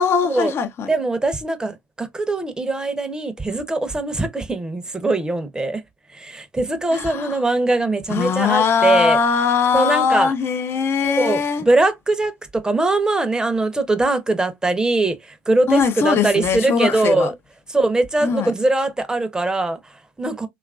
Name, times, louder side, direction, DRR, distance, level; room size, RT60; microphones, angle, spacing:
voice 1, 0.0-0.9 6.9-7.4 8.1-11.7 15.7-17.3 18.2-18.5, left 6 dB, 50° left, 0.5 m, -20 dB
voice 2, 0.9-5.8 6.1-9.2 9.7-10.3 11.0-17.3 17.7-20.5, right 2 dB, 15° right, 0.7 m, -21 dB
2.9 x 2.4 x 2.2 m
supercardioid pair, 80°, 5 cm